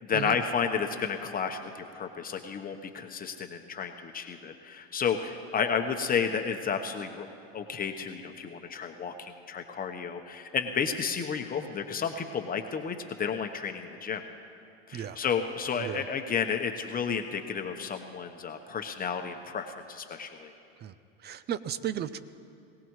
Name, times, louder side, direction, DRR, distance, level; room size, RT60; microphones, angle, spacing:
voice 1, 0.0-7.3 7.5-14.2 14.9-20.5, left 6 dB, 25° left, 5 dB, 1.0 m, -32 dB
voice 2, 21.2-22.2, right 10 dB, 30° right, 15 dB, 0.6 m, -34 dB
22.5 x 17.0 x 3.2 m, 2.5 s
hypercardioid pair, 95°, 32 cm